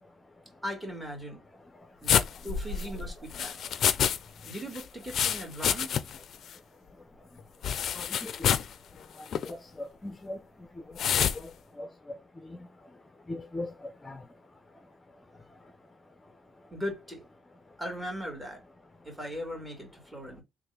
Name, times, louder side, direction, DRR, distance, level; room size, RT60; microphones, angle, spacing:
voice 1, 0.6-1.4 2.0-3.6 4.4-6.0 16.7-17.2 17.8-18.6 19.0-20.4, equal, 10° right, 2.2 m, -38 dB
sound 1, 2.1-4.2 4.4-6.2 6.5-6.6 7.6-8.7 9.3-9.5 11.0-11.4, left 8 dB, 65° left, 0.4 m, -27 dB
voice 2, 8.0-8.5 9.5-10.4 11.8-11.9 13.3-14.2, left 2 dB, 20° left, 0.6 m, -39 dB
3.4 x 2.5 x 3.3 m
cardioid pair, 90°, 0 cm